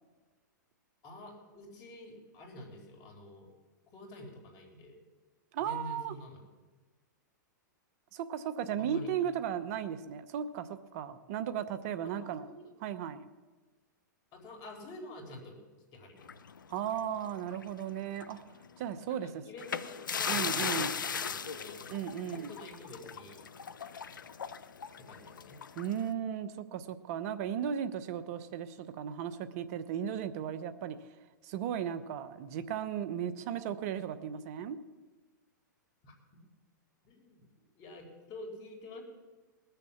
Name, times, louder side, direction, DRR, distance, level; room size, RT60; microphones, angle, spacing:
voice 1, 1.0-3.5 3.9-5.0 5.6-6.4 8.8-9.2 12.2-12.7 14.3-15.6 15.9-16.3 19.0-21.9 22.2-23.4 24.1-24.3 25.1-25.6 36.0-36.1 37.0-37.4 37.8-39.0, left 1 dB, 35° left, 2 dB, 3.6 m, -48 dB
voice 2, 5.5-6.2 8.1-12.5 12.8-13.3 16.7-18.4 18.8-19.4 20.3-21.0 21.9-22.5 25.7-31.0 31.4-34.8, right 9 dB, 50° right, 12 dB, 1.0 m, -36 dB
sound 1, 16.2-17.8 18.1-18.3 19.6-26.1, left 6 dB, 90° left, 0.7 m, -37 dB
19.5 x 7.0 x 7.2 m, 1.3 s
hypercardioid pair, 120°, 10 cm